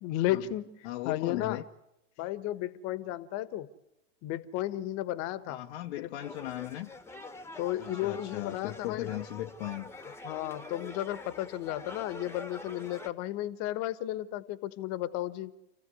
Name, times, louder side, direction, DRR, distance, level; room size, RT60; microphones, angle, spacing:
voice 1, 0.0-0.8 1.0-1.6 2.2-3.7 4.2-5.6 6.0-6.1 7.6-9.1 10.2-15.5, left 14 dB, 40° left, 1.4 m, -33 dB
voice 2, 0.8-1.6 5.5-6.9 7.8-9.9, left 15 dB, 60° left, 1.0 m, -37 dB
sound 1, 6.2-13.1, left 3 dB, 5° left, 1.4 m, -45 dB
28.0 x 15.5 x 9.6 m
hypercardioid pair, 100°, 37 cm